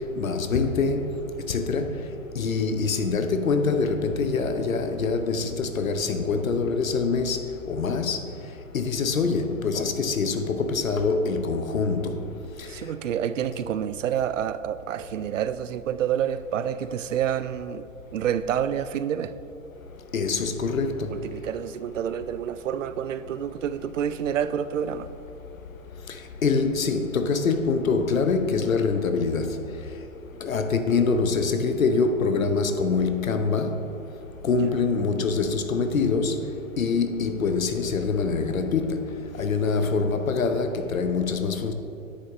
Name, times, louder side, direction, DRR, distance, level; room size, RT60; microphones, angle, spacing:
voice 1, 0.2-1.0 1.5-1.9 2.4-7.4 7.7-8.2 8.7-12.2 20.1-21.1 26.4-29.5 30.4-33.7 34.4-36.4 36.8-39.0 39.4-41.7, left 4 dB, 80° left, 0.9 m, -24 dB
voice 2, 12.7-19.3 21.1-25.1 29.2-29.3 34.6-34.8, right 9 dB, 70° right, 0.5 m, -28 dB
9.9 x 8.6 x 3.1 m
figure-of-eight pair, 115°, 40 cm